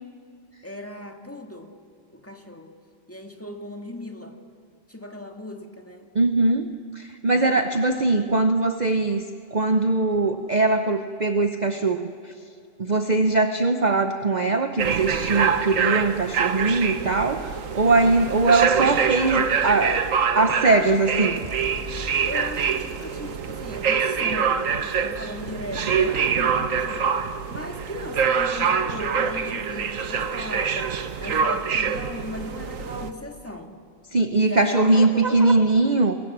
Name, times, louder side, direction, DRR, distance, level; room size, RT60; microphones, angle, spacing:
voice 1, 0.6-1.7 2.2-2.7 3.1-4.4 4.9-6.1 7.3-7.7 22.2-33.8 34.4-35.4, left 1 dB, 10° left, 3 dB, 2.0 m, -37 dB
voice 2, 6.1-9.2 9.5-12.3 12.8-20.1 20.4-21.4 34.1-36.2, right 3 dB, 40° right, 7 dB, 0.9 m, -21 dB
sound 1, 14.8-33.1, right 6 dB, 85° right, 1.5 m, -25 dB
sound 2, 21.4-25.5, right 1 dB, 65° right, 3.0 m, -43 dB
28.0 x 23.0 x 7.4 m, 2.4 s
omnidirectional pair, 1.3 m